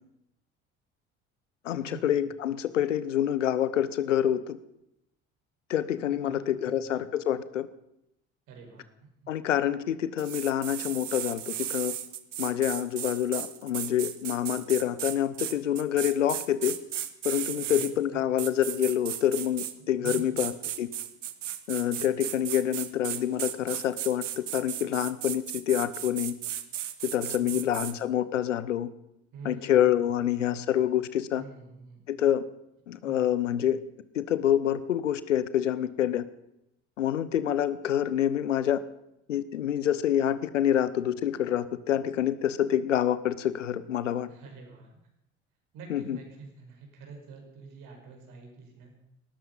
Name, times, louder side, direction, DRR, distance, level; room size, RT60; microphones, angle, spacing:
voice 1, 1.6-4.6 5.7-7.7 9.3-11.9 12.4-16.8 17.2-20.9 21.7-26.3 27.1-28.9 29.4-31.4 32.1-32.4 32.9-33.8 34.1-36.2 37.0-38.8 39.3-44.3 45.9-46.2, left 11 dB, 85° left, 16 dB, 0.9 m, -27 dB
voice 2, 6.1-6.9 8.5-8.9 9.2-9.3 17.5-17.8 18.1-18.4 20.0-20.4 27.2-27.6 29.3-30.4 31.3-32.0 33.0-33.3 44.3-44.9 45.7-48.9, right 4 dB, 60° right, 2 dB, 5.6 m, -47 dB
sound 1, 10.2-17.9 18.4-19.7 20.0-27.9, right 11 dB, 85° right, 1.0 m, -35 dB
18.5 x 13.5 x 5.5 m, 0.81 s
hypercardioid pair, 60°, 36 cm